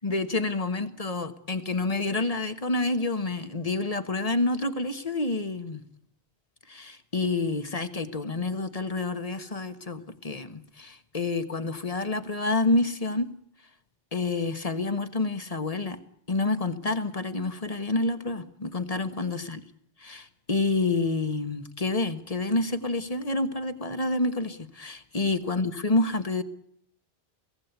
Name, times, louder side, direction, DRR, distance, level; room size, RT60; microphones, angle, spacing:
voice 1, 0.0-5.8 6.7-13.3 14.1-16.0 16.3-19.6 20.0-26.4, left 2 dB, 35° left, 9 dB, 1.4 m, -28 dB
24.0 x 17.5 x 8.2 m, 0.66 s
omnidirectional pair, 1.0 m